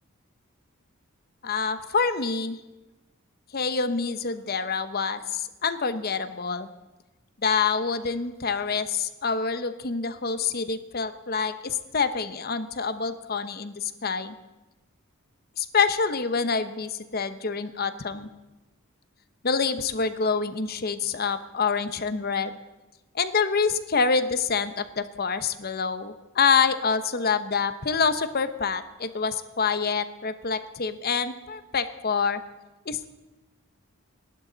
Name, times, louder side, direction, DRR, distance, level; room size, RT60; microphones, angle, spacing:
voice 1, 1.4-2.6 3.5-6.7 7.4-14.4 15.6-18.3 19.4-22.6 23.1-32.4 32.9-33.1, left 5 dB, 45° left, 11 dB, 0.9 m, -26 dB
29.0 x 11.5 x 4.0 m, 1.1 s
head